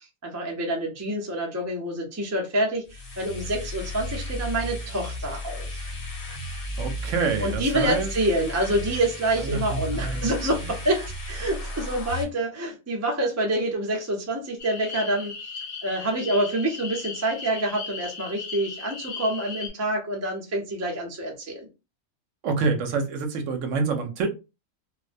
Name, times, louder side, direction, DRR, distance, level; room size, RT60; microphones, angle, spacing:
voice 1, 0.2-5.8 7.4-15.4 15.8-21.7, right 1 dB, 25° right, 0.3 m, -27 dB
sound 1, 2.8-12.2, left 1 dB, 50° left, 0.8 m, -34 dB
voice 2, 6.8-8.1 9.4-10.3 22.4-24.3, right 4 dB, 70° right, 0.9 m, -27 dB
sound 2, 14.6-19.7, left 5 dB, 80° left, 1.1 m, -37 dB
2.4 x 2.1 x 2.5 m
omnidirectional pair, 1.5 m